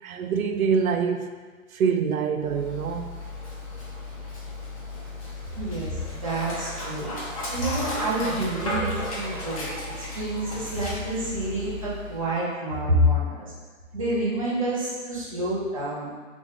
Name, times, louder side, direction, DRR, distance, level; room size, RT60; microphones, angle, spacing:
voice 1, 0.0-1.3 1.7-3.1, right 6 dB, 85° right, 6 dB, 0.5 m, -25 dB
Dog, 2.4-12.3, left 2 dB, 25° left, 0.7 m, -35 dB
voice 2, 5.5-7.1 7.5-9.7 10.0-13.5 13.9-16.1, equal, 25° right, -7 dB, 0.7 m, -27 dB
3.6 x 3.2 x 3.7 m, 1.4 s
hypercardioid pair, 170°, 41 cm